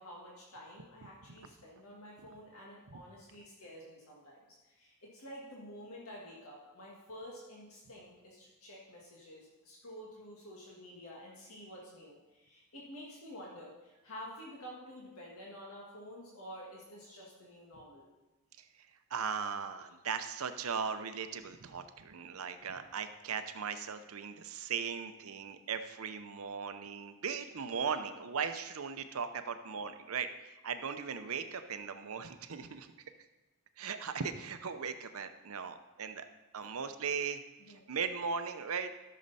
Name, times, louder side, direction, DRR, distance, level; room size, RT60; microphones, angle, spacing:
voice 1, 0.0-18.1 37.7-37.9, equal, 75° left, -4 dB, 1.9 m, -50 dB
voice 2, 19.1-32.9 33.8-36.3 36.5-37.4 37.7-38.9, right 6 dB, 75° right, 9 dB, 0.7 m, -38 dB
14.0 x 6.6 x 4.1 m, 1.1 s
head